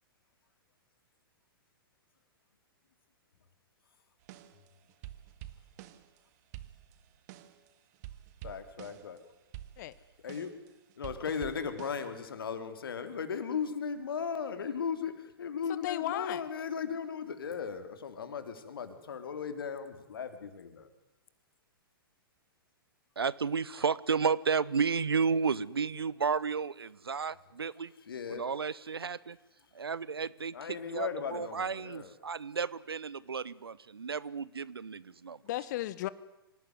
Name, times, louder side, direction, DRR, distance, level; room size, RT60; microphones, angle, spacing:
sound 1, 4.2-6.2 6.5-7.7 7.9-9.2 9.5-12.1, right 13 dB, 45° right, 1.9 m, -48 dB
voice 1, 8.4-9.2 10.2-10.5 11.0-20.9 28.1-28.4 30.5-32.1, left 6 dB, 70° left, 9 dB, 3.4 m, -37 dB
voice 2, 15.7-16.4 35.4-36.1, left 15 dB, 50° left, 17 dB, 1.4 m, -35 dB
voice 3, 23.2-27.9 28.3-29.4 29.7-35.4, right 5 dB, 80° right, 21 dB, 1.0 m, -32 dB
26.0 x 18.5 x 9.6 m, 0.95 s
figure-of-eight pair, 110°, 12 cm